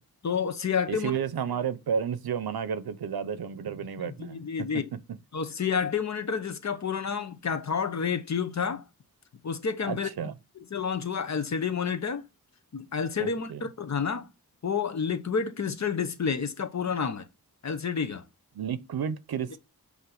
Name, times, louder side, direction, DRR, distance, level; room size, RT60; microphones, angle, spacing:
voice 1, 0.2-1.1 4.0-4.9 5.3-8.8 9.4-10.1 10.7-12.2 12.7-14.3 14.6-17.3 17.6-18.2, left 6 dB, 45° left, 0.9 m, -29 dB
voice 2, 0.9-4.4 9.9-10.3 13.2-13.6 18.5-19.6, right 7 dB, 75° right, 0.8 m, -31 dB
8.3 x 2.8 x 6.0 m
wide cardioid pair, 115°, 37 cm